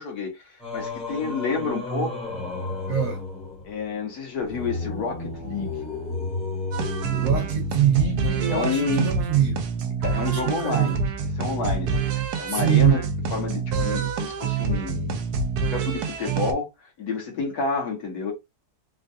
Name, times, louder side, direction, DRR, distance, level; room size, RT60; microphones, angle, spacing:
voice 1, 0.0-2.3 3.6-5.7 8.5-9.1 10.0-11.0 11.3-13.1 13.3-15.2 15.7-18.3, left 4 dB, 70° left, 1.6 m, -29 dB
Singing, 0.6-8.0, left 2 dB, 5° left, 0.7 m, -33 dB
voice 2, 2.9-3.2 7.1-9.6 10.3-10.9 12.5-13.0, right 9 dB, 60° right, 1.3 m, -23 dB
sound 1, 6.7-16.5, right 5 dB, 75° right, 1.1 m, -27 dB
3.6 x 2.3 x 2.7 m
omnidirectional pair, 1.7 m